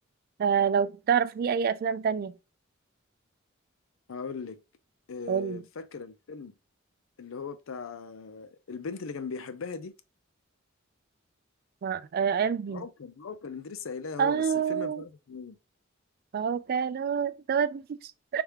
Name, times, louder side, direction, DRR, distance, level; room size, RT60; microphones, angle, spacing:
voice 1, 0.4-2.3 5.3-5.6 11.8-12.8 14.2-15.0 16.3-18.4, right 7 dB, 50° right, 0.3 m, -27 dB
voice 2, 4.1-4.6 5.1-6.5 7.2-9.9 12.7-15.6, left 5 dB, 75° left, 0.5 m, -39 dB
3.4 x 3.3 x 2.9 m
head